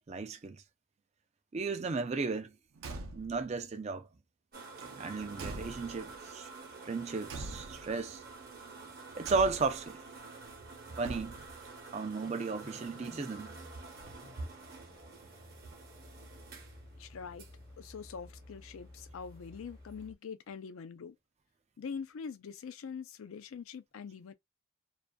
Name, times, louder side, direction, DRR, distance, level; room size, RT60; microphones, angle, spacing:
voice 1, 0.1-0.6 1.5-2.5 3.1-4.1 5.0-6.5 6.8-8.2 9.2-10.0 11.0-11.4 11.9-13.5, right 4 dB, 30° right, 0.3 m, -34 dB
Car / Truck / Slam, 2.7-3.5 4.7-6.2 7.3-8.0 9.2-9.9 11.0-11.7, right 2 dB, 80° right, 0.5 m, -44 dB
sound 1, 4.5-20.1, right 4 dB, 45° right, 0.8 m, -50 dB
sound 2, 12.2-20.1, left 1 dB, 20° left, 0.5 m, -54 dB
voice 2, 17.0-17.5 17.8-21.2 21.8-24.3, left 6 dB, 75° left, 0.4 m, -44 dB
2.4 x 2.4 x 2.2 m
head